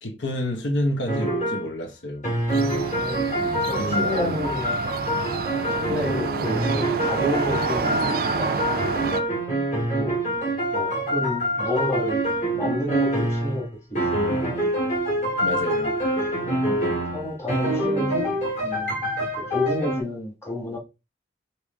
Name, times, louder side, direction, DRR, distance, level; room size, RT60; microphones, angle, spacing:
voice 1, 0.0-2.2 3.7-4.6 5.9-6.2 15.4-15.9, left 1 dB, 90° left, 1.0 m, -29 dB
sound 1, 1.1-1.7 2.2-13.7 14.0-20.0, right 1 dB, 40° left, 1.9 m, -25 dB
sound 2, 2.5-9.2, right 4 dB, 55° right, 0.4 m, -29 dB
voice 2, 2.8-3.2 3.6-4.8 5.7-9.2 9.9-10.2 10.7-12.2 12.5-14.6 16.4-16.6 17.1-18.3 18.6-20.8, left 1 dB, 15° left, 1.4 m, -30 dB
5.0 x 2.9 x 3.6 m
head